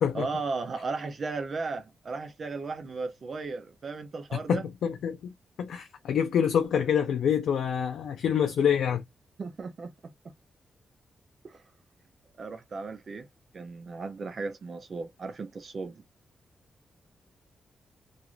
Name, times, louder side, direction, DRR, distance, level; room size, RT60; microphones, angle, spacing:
voice 1, 0.1-4.7 9.4-10.3 11.4-11.6 12.4-13.3 13.5-16.0, right 4 dB, 45° right, 0.4 m, -36 dB
voice 2, 4.5-5.2 5.6-9.0, left 8 dB, 80° left, 0.4 m, -26 dB
2.4 x 2.4 x 2.9 m
wide cardioid pair, 135°, 0 cm